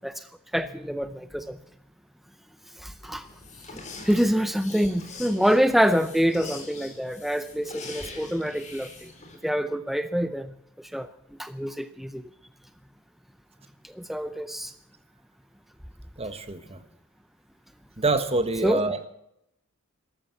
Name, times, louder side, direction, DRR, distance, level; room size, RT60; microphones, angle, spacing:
voice 1, 0.5-1.6 2.8-3.3 3.7-9.1 9.4-11.1 11.4-12.2 13.8-14.7 18.6-18.8, equal, ahead, 11 dB, 0.5 m, -26 dB
sound 1, 3.0-9.4, left 3 dB, 35° left, 4.1 m, -43 dB
voice 2, 16.2-16.8 18.0-19.1, right 3 dB, 30° right, 10 dB, 1.4 m, -26 dB
14.0 x 13.0 x 7.2 m, 0.79 s
head